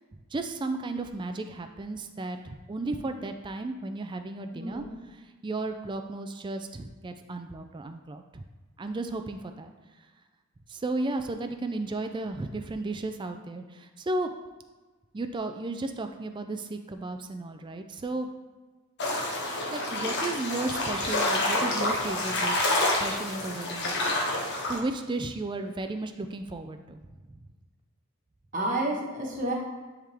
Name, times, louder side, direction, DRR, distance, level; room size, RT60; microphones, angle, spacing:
voice 1, 0.3-4.8 5.1-8.4 8.8-9.7 10.7-14.3 15.1-18.3 19.7-23.9 24.7-27.0, right 2 dB, 20° right, 6 dB, 0.3 m, -34 dB
voice 2, 4.5-4.8 20.8-20.9 28.5-29.5, right 1 dB, 40° right, -1 dB, 1.3 m, -30 dB
sound 1, 19.0-24.8, left 1 dB, 55° left, 1.1 m, -28 dB
10.0 x 3.6 x 3.4 m, 1.3 s
head